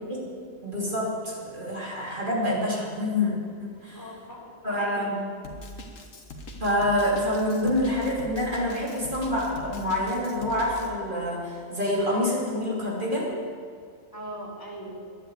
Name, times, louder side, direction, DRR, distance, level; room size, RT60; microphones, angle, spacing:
voice 1, 0.6-4.0 4.6-5.2 6.6-13.3, left 1 dB, 40° right, -4 dB, 3.2 m, -27 dB
voice 2, 3.8-5.1 14.1-15.0, equal, 15° left, -6 dB, 3.3 m, -40 dB
Drum kit, 5.4-10.9, left 1 dB, 85° left, 1.8 m, -41 dB
10.5 x 10.5 x 8.0 m, 2.1 s
omnidirectional pair, 1.3 m